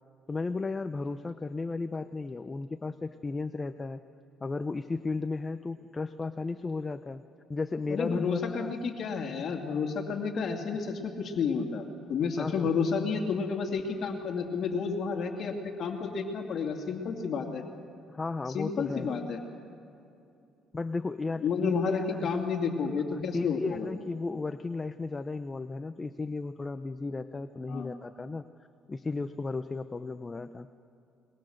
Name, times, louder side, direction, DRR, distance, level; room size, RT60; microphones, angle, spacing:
voice 1, 0.3-4.0 4.4-7.2 7.5-8.7 12.4-12.7 18.1-19.1 20.7-22.3 23.1-28.4 28.9-30.7, left 3 dB, 25° left, 10 dB, 0.6 m, -34 dB
voice 2, 7.9-11.8 12.1-15.5 15.8-17.6 18.5-19.4 21.4-23.9 27.7-27.9, left 5 dB, 55° left, 3 dB, 2.6 m, -31 dB
22.5 x 22.0 x 6.6 m, 2.6 s
cardioid pair, 100°, 0 cm